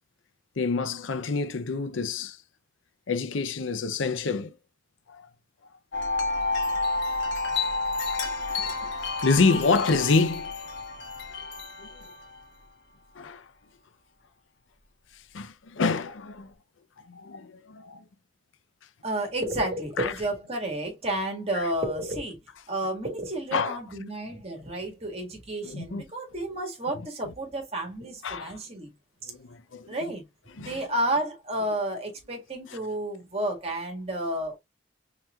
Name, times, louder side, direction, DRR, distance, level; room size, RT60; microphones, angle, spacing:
voice 1, 0.6-2.4 3.1-4.5 5.1-5.3 8.6-8.9 9.2-10.5 11.8-12.0 13.1-13.5 15.3-16.5 17.1-18.0 20.0-20.1 21.5-21.7 23.5-23.8 25.6-26.0 28.2-28.6 29.3-29.9 30.5-30.8 31.7-31.8 32.7-32.8, left 4 dB, 85° left, 0.6 m, -27 dB
Wind chime, 5.9-12.4, left 3 dB, 70° left, 1.2 m, -30 dB
voice 2, 19.0-22.4 22.7-28.9 29.2-29.3 29.8-30.2 30.6-34.6, right 1 dB, 30° right, 1.7 m, -31 dB
4.5 x 4.0 x 2.3 m
head